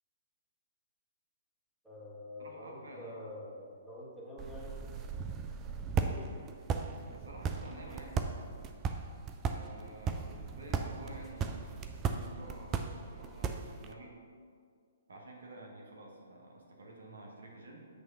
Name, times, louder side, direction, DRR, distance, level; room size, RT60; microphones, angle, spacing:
voice 1, 1.8-4.8 6.1-6.3, left 1 dB, 5° right, -7 dB, 1.6 m, -47 dB
voice 2, 2.4-3.2 7.1-8.2 9.5-11.8 12.2-14.2 15.1-17.9, right 2 dB, 70° right, 0 dB, 1.2 m, -50 dB
sound 1, 4.4-13.9, right 5 dB, 20° right, 0.4 m, -37 dB
8.2 x 3.2 x 5.5 m, 2.1 s
figure-of-eight pair, 125°, 0 cm